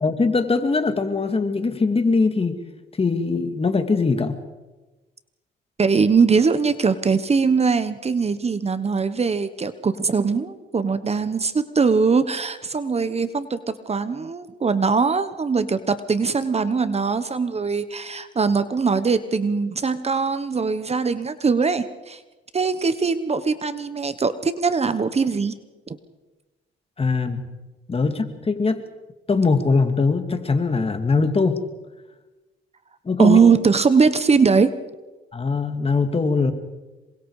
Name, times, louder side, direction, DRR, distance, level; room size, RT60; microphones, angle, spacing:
voice 1, 0.0-2.6 3.0-4.3 27.0-27.5 27.9-28.8 29.3-31.6 33.0-33.4 35.3-36.5, left 4 dB, 30° left, 7 dB, 2.5 m, -21 dB
voice 2, 5.8-22.2 22.5-25.5 25.9-26.0 33.2-34.7, right 5 dB, 30° right, 12 dB, 1.3 m, -21 dB
27.0 x 24.0 x 5.0 m, 1.2 s
cardioid pair, 90°, 20 cm